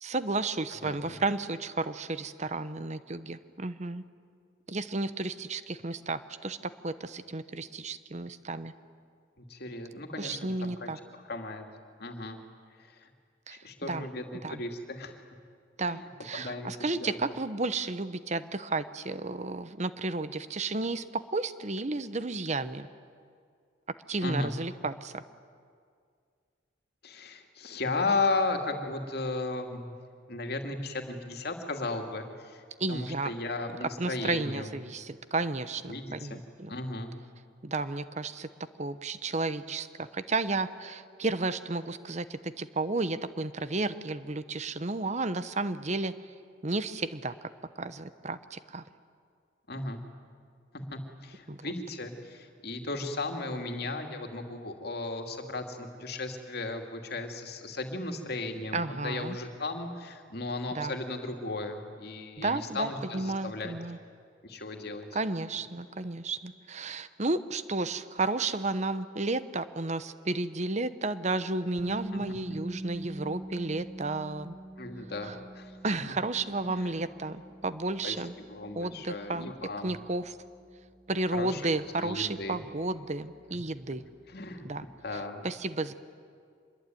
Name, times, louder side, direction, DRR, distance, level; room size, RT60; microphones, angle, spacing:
voice 1, 0.0-4.0 4.7-8.7 10.2-11.0 13.5-14.1 14.4-14.6 15.8-22.9 24.1-25.2 32.8-33.3 34.0-36.7 37.6-38.5 38.8-46.1 46.6-47.3 47.8-48.8 51.5-51.7 58.7-59.4 60.7-60.9 62.4-64.0 65.1-74.6 75.2-75.3 75.8-78.3 78.7-79.5 79.8-80.4 81.1-84.1 84.6-84.9 85.1-85.9, right 3 dB, 35° right, 13 dB, 0.9 m, -32 dB
voice 2, 0.8-1.2 9.4-10.9 11.3-11.6 12.0-12.4 13.0-13.1 13.5-15.2 15.9-16.1 16.3-17.2 24.2-24.5 27.0-29.9 30.3-32.6 32.9-34.7 35.9-36.4 36.7-37.1 49.7-50.0 50.7-63.7 64.4-65.2 74.8-75.7 76.7-77.0 78.0-78.1 78.5-80.0 81.3-81.7 82.0-82.6 84.3-84.7 85.0-85.5, left 2 dB, 55° left, 4 dB, 2.6 m, -35 dB
sound 1, 71.8-83.6, right 1 dB, 75° right, 4.6 m, -44 dB
26.0 x 21.5 x 9.3 m, 2.2 s
head